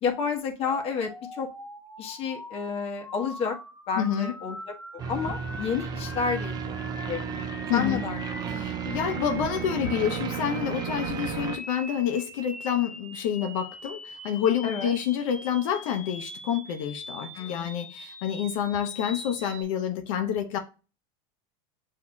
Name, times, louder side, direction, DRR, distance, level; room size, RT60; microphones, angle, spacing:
voice 1, 0.0-1.5 2.0-3.6 3.9-4.6 5.1-6.6 7.1-7.4 7.7-8.2 14.6-14.9 17.3-17.7, left 6 dB, 35° left, 1.1 m, -30 dB
sound 1, 0.6-19.6, left 1 dB, 5° left, 1.0 m, -43 dB
voice 2, 4.0-4.3 7.7-8.0 8.5-20.6, left 9 dB, 75° left, 0.7 m, -28 dB
sound 2, 5.0-11.6, right 7 dB, 25° right, 0.5 m, -33 dB
7.1 x 2.8 x 2.3 m
supercardioid pair, 150°, 17 cm